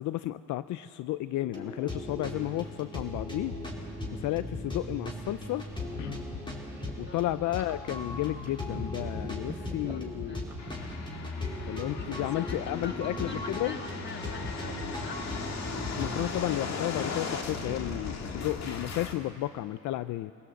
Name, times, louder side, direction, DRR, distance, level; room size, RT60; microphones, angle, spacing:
voice 1, 0.0-3.5 4.1-5.7 6.0-6.2 7.0-10.5 11.6-13.8 16.0-20.3, left 15 dB, 75° left, 14 dB, 0.5 m, -32 dB
sound 1, 1.4-16.2, left 1 dB, 15° left, 4.2 m, -38 dB
sound 2, 5.3-10.9, right 1 dB, 5° right, 4.1 m, -46 dB
voice 2, 7.0-7.4 9.3-10.5 12.0-15.3, left 4 dB, 35° left, 4 dB, 2.1 m, -46 dB
sound 3, 10.6-19.1, left 4 dB, 60° left, 2.0 m, -38 dB
24.0 x 16.0 x 8.0 m, 2.6 s
cardioid pair, 90°, 30 cm